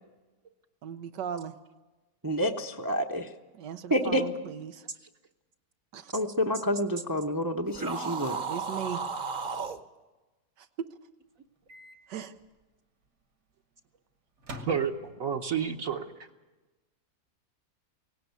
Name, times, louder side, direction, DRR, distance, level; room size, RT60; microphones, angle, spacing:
voice 1, 0.8-1.5 3.6-4.8 5.9-6.1 8.5-9.0 10.6-10.7 12.1-12.3, right 8 dB, 90° right, 8 dB, 1.5 m, -37 dB
voice 2, 2.2-3.3 3.9-4.2 6.1-8.4, equal, 20° right, 4 dB, 0.7 m, -28 dB
sound 1, 7.7-9.8, right 5 dB, 35° right, 1.0 m, -34 dB
Microwave oven, 11.7-12.0 12.3-12.5 14.4-15.4, equal, 75° right, 2.6 m, -45 dB
voice 3, 14.6-16.1, right 7 dB, 60° right, 2 dB, 1.3 m, -30 dB
18.0 x 17.5 x 9.4 m, 1.2 s
omnidirectional pair, 1.8 m